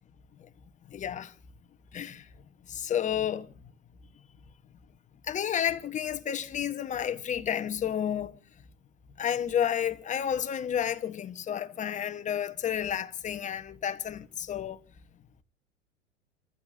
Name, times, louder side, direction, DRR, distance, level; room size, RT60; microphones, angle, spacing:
voice 1, 0.9-1.4 1.9-2.3 2.7-3.5 5.2-8.4 9.2-14.8, left 9 dB, 20° left, 1.0 m, -31 dB
29.5 x 14.5 x 2.6 m
hypercardioid pair, 100°, 37 cm